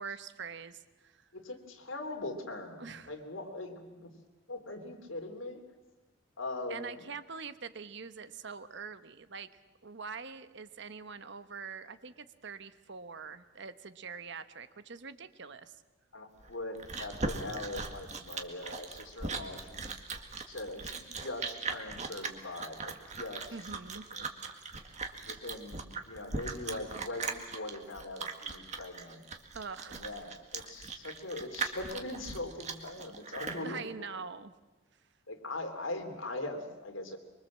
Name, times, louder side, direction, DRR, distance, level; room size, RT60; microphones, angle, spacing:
voice 1, 0.0-1.2 2.8-3.1 6.7-9.5 9.8-15.7 23.5-24.1 29.5-30.1 33.6-34.5, right 5 dB, 60° right, 12 dB, 1.1 m, -44 dB
voice 2, 1.3-4.1 4.5-5.6 6.4-7.1 16.1-19.9 20.5-23.4 24.2-24.3 25.2-29.2 29.9-34.1 35.3-37.2, left 2 dB, 85° left, 4 dB, 3.4 m, -41 dB
Chewing mastication, 16.4-33.6, right 4 dB, 35° right, 1.9 m, -39 dB
24.5 x 23.5 x 7.5 m, 1.2 s
head